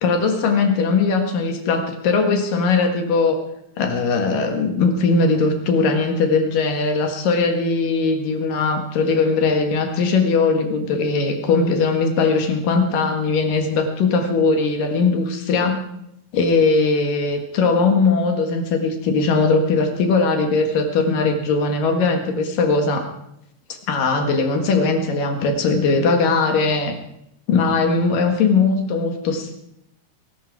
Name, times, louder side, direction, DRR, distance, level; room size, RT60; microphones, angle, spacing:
voice 1, 0.0-3.4 3.8-15.8 16.3-23.1 23.9-26.9 27.5-29.5, left 4 dB, 65° left, 4 dB, 3.2 m, -19 dB
21.0 x 12.5 x 4.8 m, 0.79 s
omnidirectional pair, 4.4 m